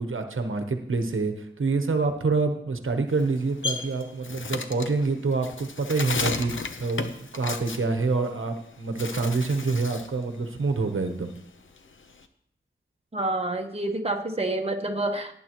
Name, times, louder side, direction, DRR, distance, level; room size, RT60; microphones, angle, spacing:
voice 1, 0.0-11.3, right 3 dB, 85° right, 6 dB, 1.0 m, -27 dB
Bird, 3.1-8.6 8.9-10.2 10.5-12.2, left 4 dB, 75° left, 0.8 m, -34 dB
voice 2, 13.1-15.3, right 2 dB, 30° right, 3 dB, 1.1 m, -28 dB
18.0 x 8.9 x 3.0 m, 0.75 s
wide cardioid pair, 75°, 20 cm